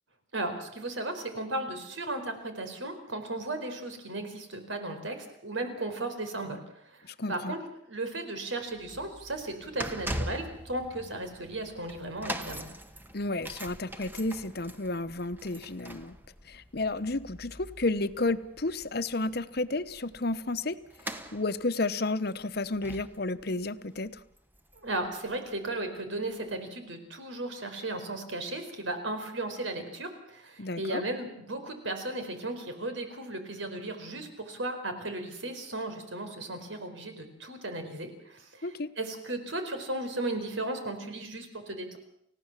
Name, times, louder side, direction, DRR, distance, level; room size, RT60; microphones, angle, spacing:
voice 1, 0.3-7.6 7.9-12.6 24.8-42.0, right 2 dB, 80° right, 7 dB, 4.8 m, -35 dB
voice 2, 7.1-7.6 13.1-16.2 16.5-20.8 21.3-24.2 30.6-31.0 38.6-38.9, left 2 dB, 55° left, 13 dB, 1.0 m, -32 dB
sound 1, 8.7-25.1 25.3-25.6 26.4-26.5, equal, 10° right, 1.3 m, -42 dB
30.0 x 16.0 x 7.5 m, 0.73 s
head